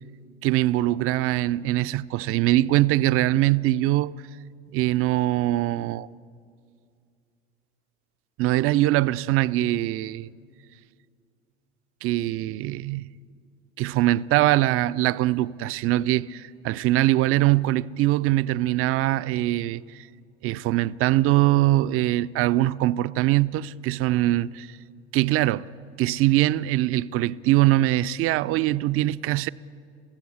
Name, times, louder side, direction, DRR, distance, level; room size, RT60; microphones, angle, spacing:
voice 1, 0.4-4.2 4.7-6.1 8.4-10.3 12.0-13.0 13.8-20.1 20.4-24.7 25.1-25.7 26.0-29.5, right 16 dB, 40° right, 0.5 m, -22 dB
22.5 x 16.0 x 8.3 m
figure-of-eight pair, 70°, 34 cm